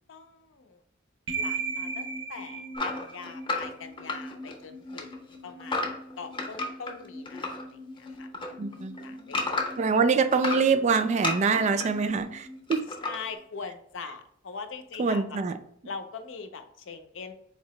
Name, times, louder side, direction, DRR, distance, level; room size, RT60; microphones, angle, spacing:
voice 1, 0.1-0.8 1.3-9.8 13.0-15.4 15.8-17.3, left 5 dB, 75° left, 0.5 m, -42 dB
sound 1, 1.3-13.3, right 3 dB, 60° right, 0.7 m, -40 dB
sound 2, 2.7-4.6 4.9-7.6 8.0-9.9 10.3-11.9 12.7-13.2, left 2 dB, 25° left, 0.7 m, -32 dB
voice 2, 8.6-9.2 9.8-12.9 15.0-15.5, right 5 dB, 35° right, 0.3 m, -25 dB
4.4 x 2.8 x 3.0 m
head